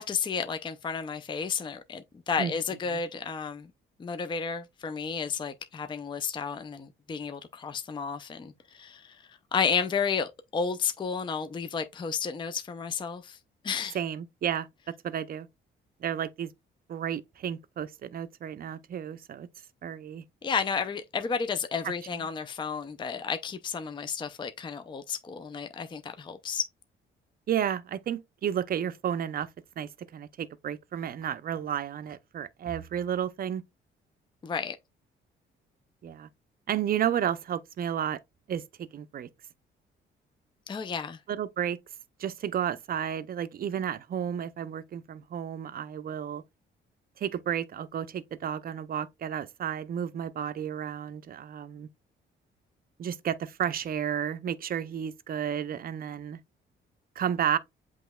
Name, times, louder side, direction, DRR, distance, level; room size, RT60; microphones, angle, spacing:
voice 1, 0.0-3.7 4.0-9.2 9.5-13.4 13.6-14.0 20.4-26.7 34.4-34.8 40.7-41.2, left 6 dB, 25° left, 0.5 m, -32 dB
voice 2, 13.9-14.7 15.0-15.5 16.0-16.5 16.9-19.5 19.8-20.2 27.5-29.5 29.8-33.6 36.0-36.3 36.7-38.2 38.5-39.3 41.3-41.8 42.2-46.4 47.2-51.9 53.0-56.4 57.2-57.6, right 9 dB, 50° right, 0.5 m, -32 dB
7.7 x 3.1 x 2.2 m
cardioid pair, 90°, 20 cm